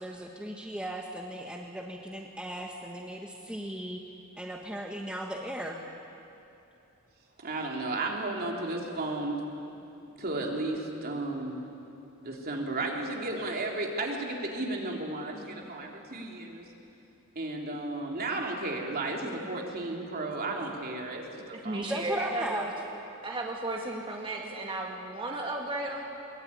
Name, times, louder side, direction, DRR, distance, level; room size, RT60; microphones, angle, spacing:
voice 1, 0.0-4.0 4.4-5.8 21.8-22.7, right 1 dB, 5° right, 0 dB, 1.3 m, -37 dB
voice 2, 7.4-9.4 10.2-11.6 12.2-16.7 17.3-21.9, right 2 dB, 45° right, 0 dB, 3.2 m, -34 dB
voice 3, 21.5-22.7 23.2-26.0, right 2 dB, 25° right, -1 dB, 2.0 m, -34 dB
22.0 x 21.0 x 9.6 m, 2.8 s
head